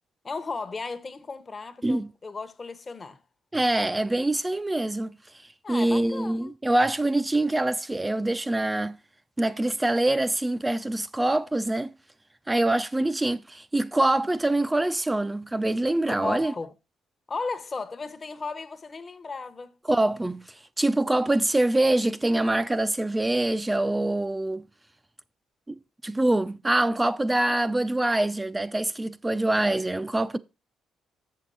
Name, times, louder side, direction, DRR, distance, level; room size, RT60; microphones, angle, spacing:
voice 1, 0.2-3.2 5.6-6.5 16.2-16.7 17.3-19.7, left 4 dB, 35° left, 0.9 m, -35 dB
voice 2, 3.5-5.1 5.7-9.0 9.4-11.9 12.5-16.5 19.9-20.5 20.8-24.6 25.7-25.8 26.0-30.4, right 1 dB, 15° right, 0.4 m, -24 dB
7.0 x 6.7 x 4.2 m
cardioid pair, 90°, 0 cm